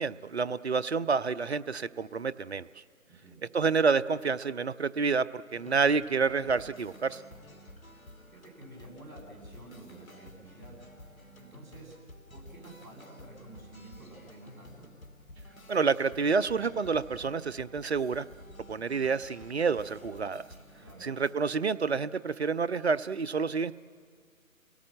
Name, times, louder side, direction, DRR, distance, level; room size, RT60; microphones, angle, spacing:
voice 1, 0.0-2.7 3.5-7.2 15.7-18.3 18.7-20.4 21.0-23.7, right 5 dB, 50° right, 14 dB, 0.6 m, -28 dB
voice 2, 3.1-3.4 8.3-10.8 11.4-11.9 12.3-14.9 20.8-21.1, right 2 dB, 35° right, -1 dB, 7.7 m, -50 dB
sound 1, 5.5-21.4, left 1 dB, 75° left, 2.5 m, -52 dB
29.0 x 17.5 x 7.7 m, 2.1 s
figure-of-eight pair, 150°, 42 cm